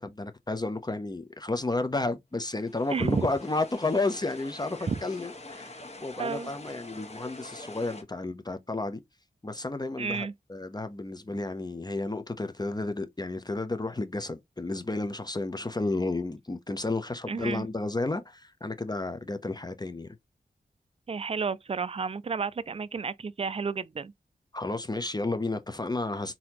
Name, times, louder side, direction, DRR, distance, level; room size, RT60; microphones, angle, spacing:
voice 1, 0.0-9.0 9.4-20.1 24.5-26.4, left 2 dB, 25° left, 0.6 m, -32 dB
sound 1, 2.5-8.0, left 2 dB, 40° left, 1.4 m, -45 dB
voice 2, 2.9-3.3 4.9-5.0 6.2-6.5 10.0-10.3 17.3-17.6 21.1-24.1, right 5 dB, 35° right, 0.4 m, -31 dB
4.0 x 2.8 x 2.9 m
wide cardioid pair, 65°, 17 cm